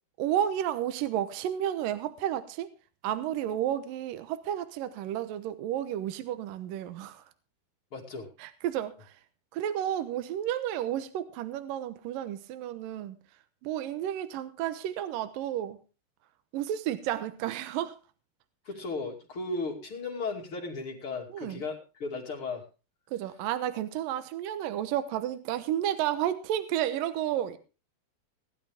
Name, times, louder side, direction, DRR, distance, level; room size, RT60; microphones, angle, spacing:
voice 1, 0.2-2.7 3.0-7.2 8.4-9.2 9.5-13.2 13.6-15.8 16.5-18.0 21.3-21.6 23.1-27.6, right 11 dB, 70° right, 11 dB, 2.4 m, -32 dB
voice 2, 7.9-8.3 18.6-22.6, left 3 dB, 35° left, -1 dB, 3.1 m, -35 dB
18.5 x 11.5 x 3.6 m, 0.33 s
omnidirectional pair, 4.6 m